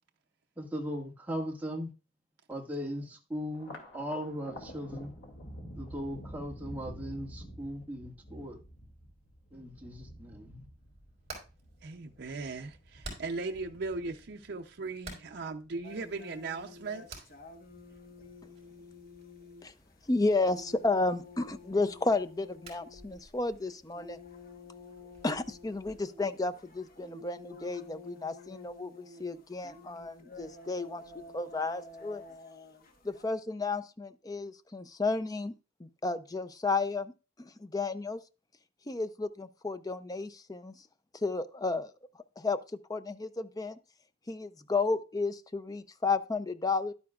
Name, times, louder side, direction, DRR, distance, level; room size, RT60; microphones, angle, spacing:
voice 1, 0.6-1.9 2.5-5.1 5.7-8.6 9.5-10.7, equal, 10° right, 1.8 m, -38 dB
Thunder, 3.5-16.2 16.6-17.4 17.7-18.6, equal, 75° left, 2.5 m, -49 dB
Hammer, 10.8-26.0, right 2 dB, 35° right, 4.9 m, -53 dB
voice 2, 11.8-17.3, right 3 dB, 60° right, 0.6 m, -38 dB
sound 1, 15.8-33.3, left 3 dB, 50° left, 1.2 m, -51 dB
voice 3, 20.1-24.2 25.2-31.0 31.3-32.2 33.0-35.5 35.8-37.1 37.4-38.2 38.9-40.7 41.1-41.9 42.4-42.6 42.9-43.8 44.3-46.9, left 3 dB, 20° left, 0.5 m, -32 dB
11.5 x 9.5 x 2.4 m
head